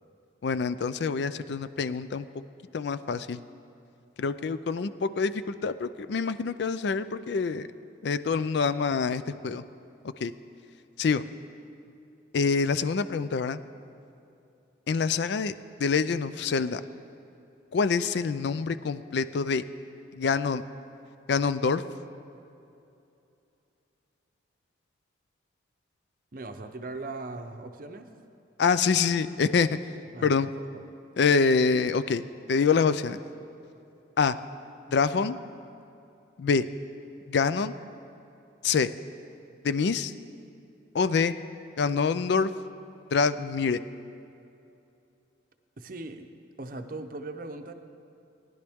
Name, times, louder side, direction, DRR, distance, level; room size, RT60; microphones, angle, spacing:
voice 1, 0.4-2.3 2.7-3.4 4.2-7.7 8.0-9.6 10.2-10.3 11.0-11.2 12.3-13.6 14.9-15.5 15.8-16.8 17.7-19.6 20.2-20.6 21.3-21.8 28.6-29.7 30.2-30.5 31.2-32.2 32.5-33.2 34.2-34.4 34.9-35.4 36.4-36.7 37.3-37.7 38.6-38.9 39.6-40.1 40.9-41.3 41.8-42.5 43.1-43.8, left 5 dB, 60° left, 13 dB, 0.4 m, -26 dB
voice 2, 26.3-28.1 30.1-30.3 45.8-46.3 46.6-47.7, right 2 dB, 45° right, 7 dB, 0.6 m, -39 dB
18.5 x 10.5 x 3.5 m, 2.7 s
head